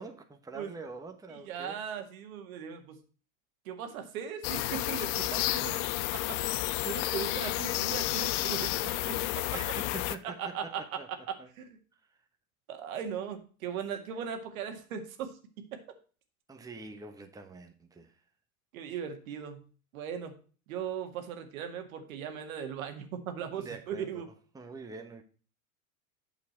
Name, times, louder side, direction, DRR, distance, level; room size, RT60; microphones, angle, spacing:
voice 1, 0.0-1.8 9.5-11.5 12.1-12.2 16.5-18.1 23.5-25.2, right 3 dB, 10° right, 1.2 m, -45 dB
voice 2, 1.5-3.0 3.7-5.7 6.3-6.4 6.6-9.3 10.4-10.8 11.6-11.7 12.7-15.3 15.7-15.8 18.7-19.6 19.9-20.3 20.7-24.3, right 8 dB, 70° right, 1.9 m, -38 dB
sound 1, 4.4-10.2, left 16 dB, 55° left, 0.7 m, -31 dB
8.4 x 7.2 x 4.3 m
hypercardioid pair, 95°, 43 cm